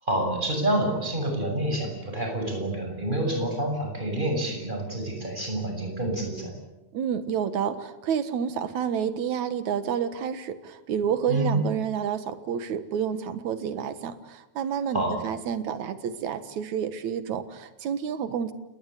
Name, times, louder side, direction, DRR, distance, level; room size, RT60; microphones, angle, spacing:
voice 1, 0.0-6.5 11.3-11.6 14.9-15.2, right 1 dB, 15° right, 2 dB, 7.3 m, -28 dB
voice 2, 6.9-18.5, right 8 dB, 75° right, 11 dB, 2.9 m, -29 dB
30.0 x 19.5 x 8.3 m, 0.98 s
omnidirectional pair, 3.3 m